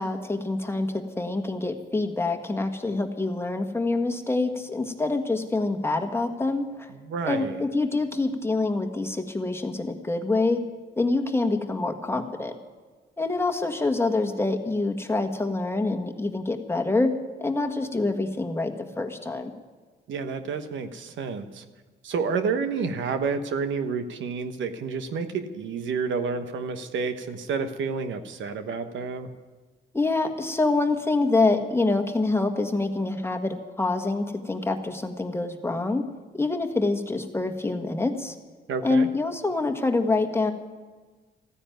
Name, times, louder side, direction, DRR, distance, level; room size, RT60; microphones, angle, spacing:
voice 1, 0.0-6.9 7.2-10.6 11.0-12.5 13.2-17.1 17.4-19.5 29.9-36.0 36.3-38.3 38.8-40.5, left 3 dB, 10° left, 5 dB, 1.5 m, -26 dB
voice 2, 6.9-7.6 20.1-21.6 22.0-29.3 38.7-39.1, right 5 dB, 70° right, 9 dB, 1.2 m, -29 dB
14.5 x 9.9 x 9.1 m, 1.4 s
cardioid pair, 90°, 20 cm